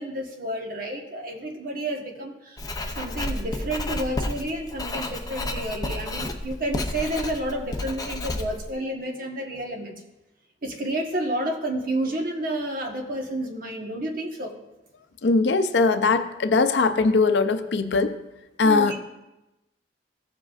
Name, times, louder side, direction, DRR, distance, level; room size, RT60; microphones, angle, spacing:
voice 1, 0.0-2.6 2.9-10.0 10.6-14.5 18.6-19.0, right 1 dB, 55° right, 2 dB, 1.3 m, -30 dB
Writing, 2.6-8.7, left 2 dB, 20° left, 0.6 m, -31 dB
voice 2, 15.2-18.1 18.6-19.0, left 4 dB, 75° left, 9 dB, 0.6 m, -20 dB
15.0 x 7.5 x 2.4 m, 0.95 s
head